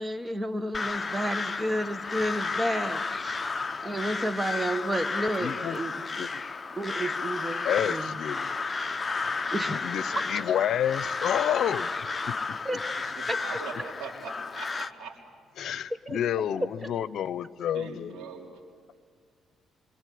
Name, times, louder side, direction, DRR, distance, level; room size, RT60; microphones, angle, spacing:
voice 1, 0.0-3.4 3.8-6.0 6.7-8.2 9.5-9.8 12.6-12.9 13.3-13.4 16.1-16.2, equal, 15° right, 11 dB, 1.4 m, -31 dB
Crow, 0.7-14.9, left 4 dB, 30° left, 0.8 m, -32 dB
voice 2, 5.4-5.8 6.1-6.4 7.6-8.6 9.7-11.9 15.6-18.2, left 10 dB, 70° left, 16 dB, 0.8 m, -29 dB
voice 3, 13.0-15.2 15.6-15.8 17.7-18.5, right 5 dB, 80° right, -2 dB, 4.0 m, -41 dB
27.0 x 24.5 x 8.5 m, 2.1 s
cardioid pair, 90°, 0 cm